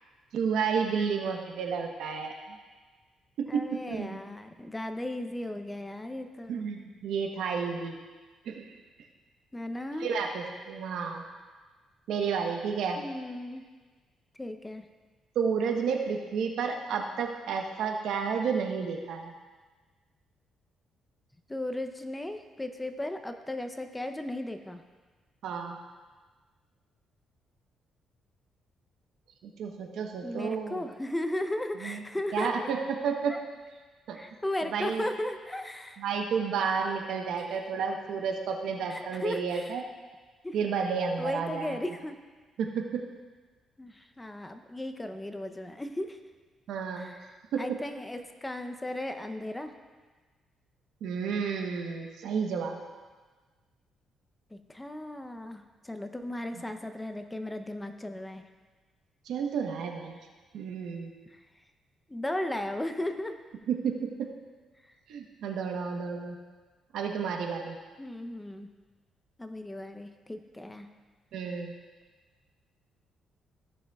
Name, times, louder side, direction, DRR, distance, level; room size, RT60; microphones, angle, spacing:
voice 1, 0.3-2.6 3.4-4.2 6.5-8.0 8.4-8.7 10.0-11.2 12.1-13.0 15.3-19.3 25.4-25.8 29.4-30.8 31.8-32.0 32.3-33.4 34.1-34.2 34.6-35.1 36.0-39.8 40.5-41.8 42.6-43.1 46.7-47.1 47.5-47.6 51.0-52.8 59.3-60.2 60.5-61.1 63.7-64.3 65.1-66.4 66.9-67.8 71.3-71.7, right 6 dB, 80° right, 3 dB, 1.0 m, -31 dB
voice 2, 3.5-6.7 9.5-10.1 13.0-13.6 14.4-14.9 21.5-24.8 30.2-32.7 33.3-33.4 34.1-36.0 37.4-37.6 38.9-39.8 40.4-40.6 41.2-42.2 43.8-46.2 47.0-47.3 47.6-49.7 54.5-58.4 61.3-61.5 62.1-63.4 68.0-68.7 69.4-70.9, left 1 dB, 10° left, 7 dB, 0.7 m, -36 dB
15.0 x 6.5 x 2.4 m, 1.4 s
cardioid pair, 90°, 0 cm